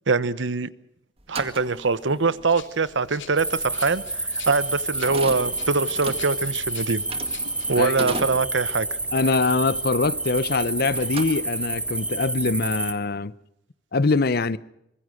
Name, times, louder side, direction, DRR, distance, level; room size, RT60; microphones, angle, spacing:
voice 1, 0.1-0.7 1.3-4.0 4.5-7.0 7.7-8.9, right 4 dB, 90° right, 1.0 m, -23 dB
sound 1, 1.2-10.6 10.9-11.9, right 3 dB, 30° right, 2.0 m, -38 dB
Rattle (instrument), 2.5-7.7, left 8 dB, 85° left, 3.6 m, -46 dB
sound 2, 3.4-12.9, right 2 dB, 5° right, 1.1 m, -29 dB
voice 2, 7.8-8.2 9.1-13.3 13.9-14.6, left 3 dB, 55° left, 0.8 m, -23 dB
24.5 x 21.0 x 6.4 m
head